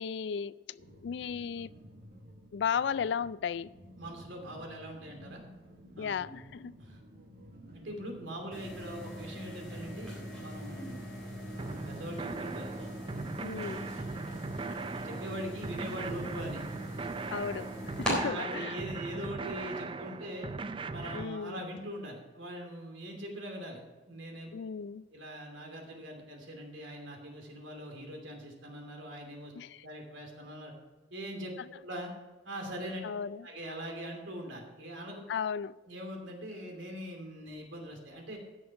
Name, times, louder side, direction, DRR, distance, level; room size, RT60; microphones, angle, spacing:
voice 1, 0.0-1.7 2.5-3.7 6.0-6.7 13.4-13.9 17.3-18.7 21.1-21.6 24.5-25.0 29.5-29.8 33.0-33.4 35.3-35.8, left 7 dB, 60° left, 0.3 m, -35 dB
sound 1, 0.8-17.8, equal, 50° right, 1.6 m, -54 dB
voice 2, 3.9-5.4 6.0-6.4 6.8-7.0 7.7-11.2 11.5-12.7 13.1-13.3 15.0-16.6 16.9-17.1 17.9-20.5 20.9-24.5 25.1-29.5 29.8-30.7 31.1-31.5 31.8-32.1 32.4-33.0 33.4-35.2 35.8-38.4, equal, 80° right, 2.8 m, -42 dB
sound 2, 8.5-18.1, equal, 5° left, 3.9 m, -41 dB
sound 3, 11.6-21.2, right 4 dB, 25° right, 0.4 m, -39 dB
15.5 x 6.4 x 4.7 m
head